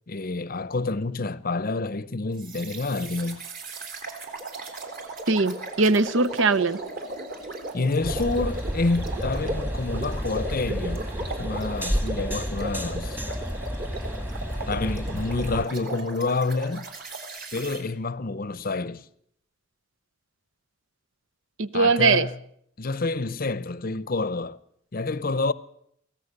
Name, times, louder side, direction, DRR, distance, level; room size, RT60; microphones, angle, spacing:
voice 1, 0.1-3.4 7.7-13.2 14.7-16.9 17.5-19.1 21.7-22.4 22.8-24.6 24.9-25.5, left 3 dB, 45° left, 0.7 m, -28 dB
sound 1, 2.4-17.8, right 2 dB, 45° right, 3.8 m, -36 dB
voice 2, 5.3-6.8 21.6-22.3, right 4 dB, 70° right, 0.9 m, -21 dB
sound 2, 8.0-15.7, equal, 10° right, 1.5 m, -31 dB
23.5 x 17.0 x 6.7 m
head